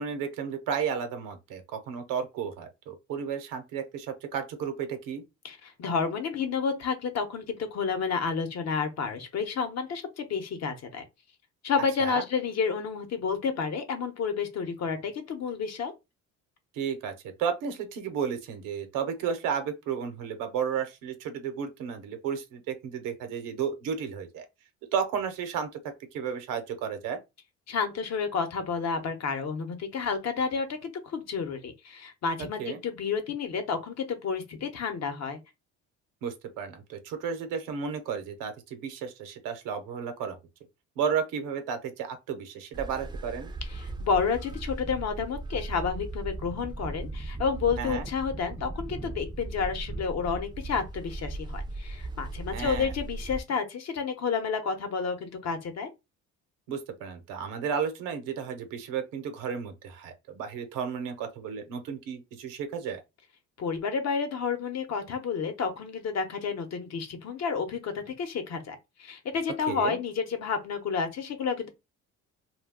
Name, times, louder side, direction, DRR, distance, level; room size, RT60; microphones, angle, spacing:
voice 1, 0.0-5.2 12.0-12.3 16.7-17.1 17.4-24.4 24.9-25.7 26.1-27.2 32.4-32.8 36.2-40.4 41.0-43.5 47.8-48.0 52.5-52.9 56.7-63.0 69.7-70.0, right 7 dB, 90° right, 0.8 m, -33 dB
voice 2, 5.4-11.0 11.6-15.9 27.7-35.4 43.7-55.9 63.6-71.7, left 5 dB, 55° left, 0.8 m, -30 dB
sound 1, 42.7-53.4, right 2 dB, 15° right, 0.4 m, -37 dB
2.3 x 2.2 x 3.5 m
cardioid pair, 90°, 32 cm